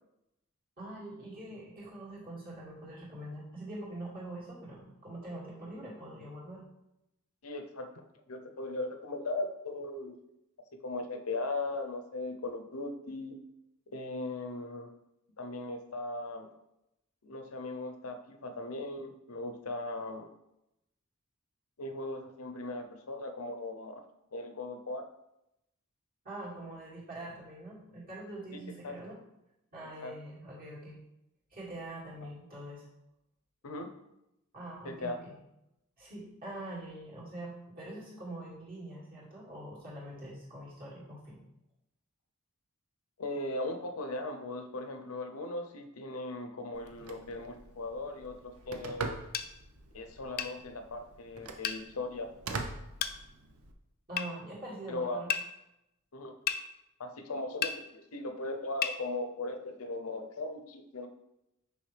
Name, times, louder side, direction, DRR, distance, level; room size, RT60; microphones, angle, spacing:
voice 1, 0.8-6.6 26.2-29.2 29.7-31.0 31.5-32.9 34.5-35.4 36.0-41.4 54.1-55.3, right 1 dB, 45° right, -6 dB, 2.3 m, -44 dB
voice 2, 7.4-7.9 8.3-10.2 10.7-13.4 13.9-14.9 15.4-16.5 17.2-20.3 21.8-24.0 24.3-25.0 28.8-29.0 30.0-30.1 33.6-33.9 34.8-35.2 43.2-49.3 49.9-52.3 54.9-55.2 56.1-56.4 57.0-61.1, left 2 dB, 80° left, 5 dB, 0.7 m, -38 dB
Telephone, 46.7-53.7, right 3 dB, 90° right, 0.7 m, -43 dB
sound 1, 49.3-49.5 50.4-50.6 51.6-51.8 53.0-53.2 54.2-54.3 55.3-55.5 56.5-56.6 57.6-57.8 58.8-59.0, left 8 dB, 45° left, 0.4 m, -32 dB
6.2 x 5.1 x 3.4 m, 0.88 s
head